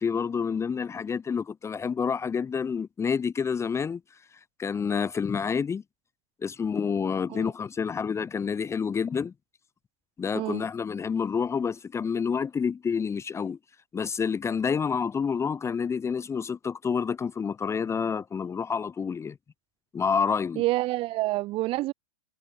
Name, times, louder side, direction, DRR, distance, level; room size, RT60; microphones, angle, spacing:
voice 1, 0.0-4.0 4.6-5.8 6.4-9.3 10.2-13.6 13.9-19.4 19.9-20.6, left 6 dB, 15° left, 1.2 m, -28 dB
voice 2, 20.6-21.9, right 18 dB, 30° right, 0.6 m, -28 dB
hypercardioid pair, 125°, 19 cm